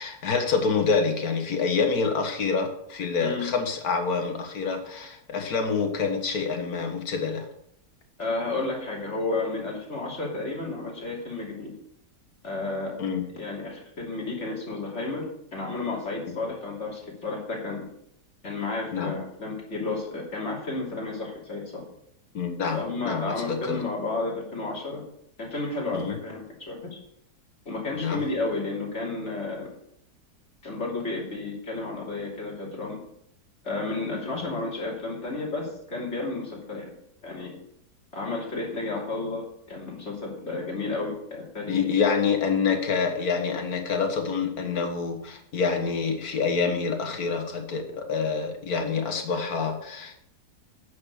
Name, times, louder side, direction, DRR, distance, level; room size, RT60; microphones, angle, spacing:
voice 1, 0.0-7.5 13.0-13.2 18.9-19.2 22.3-22.8 23.0-23.8 25.9-26.2 27.9-28.2 34.5-34.6 41.7-50.3, left 5 dB, 60° left, 4 dB, 1.9 m, -27 dB
voice 2, 8.2-11.7 12.4-13.0 13.3-15.2 15.5-17.9 18.4-21.8 22.7-25.0 25.4-27.0 27.6-29.7 30.6-33.0 33.6-36.9 37.2-37.5 38.1-39.4 39.7-41.9, left 3 dB, 40° left, -3 dB, 3.3 m, -32 dB
9.4 x 6.5 x 6.4 m, 0.72 s
omnidirectional pair, 1.8 m